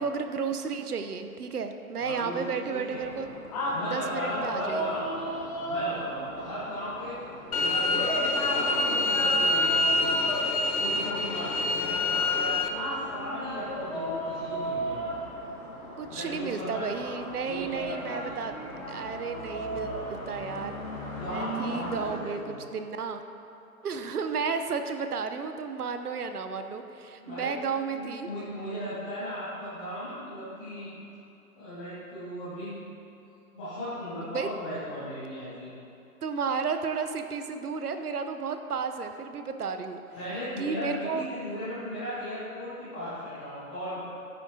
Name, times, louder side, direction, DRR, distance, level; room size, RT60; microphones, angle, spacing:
voice 1, 0.0-3.3 3.9-5.0 16.0-18.6 18.9-20.7 21.3-23.2 23.8-28.3 34.3-34.5 36.2-40.0 40.6-41.2, right 5 dB, 85° right, 8 dB, 1.0 m, -33 dB
voice 2, 2.0-3.0 3.7-7.1 7.6-10.2 10.7-15.0 16.1-17.1 17.4-18.3 21.2-22.6 27.2-27.5 27.9-30.9 31.5-32.8 33.5-35.7 40.1-44.0, equal, 5° left, -13 dB, 0.6 m, -37 dB
sound 1, 2.9-22.2, equal, 25° left, 1.3 m, -35 dB
sound 2, 7.5-12.7, left 2 dB, 75° left, 1.0 m, -26 dB
12.0 x 9.9 x 2.8 m, 2.9 s
hypercardioid pair, 160°, 44 cm